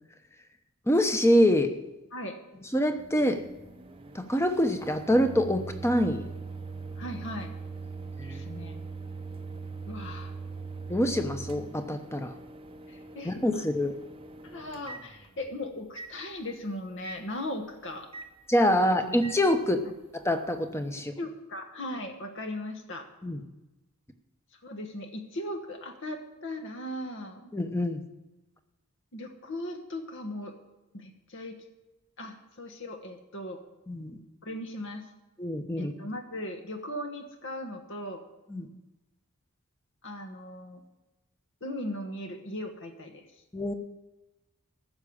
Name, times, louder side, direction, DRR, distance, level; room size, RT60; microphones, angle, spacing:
voice 1, 0.9-1.7 2.7-3.4 4.1-6.3 8.2-8.4 10.9-12.3 13.2-13.9 18.5-19.8 20.1-21.1 23.2-23.4 27.5-28.0 33.9-34.2 35.4-35.9 38.5-38.7 43.5-43.7, equal, 10° left, 7 dB, 0.9 m, -25 dB
Microwave oven, 3.0-15.5 16.0-16.1 17.0-17.2 18.1-18.3 19.2-19.4, right 4 dB, 25° right, 0.7 m, -41 dB
voice 2, 7.0-7.5 8.2-8.8 9.9-10.3 12.9-13.6 14.4-18.1 19.0-19.1 21.2-23.1 24.6-27.5 29.1-30.5 30.9-31.6 32.2-33.6 34.4-35.1 35.7-38.2 40.0-40.8 41.6-43.4, left 1 dB, 55° left, 5 dB, 1.3 m, -38 dB
14.5 x 6.3 x 8.6 m, 1.0 s
head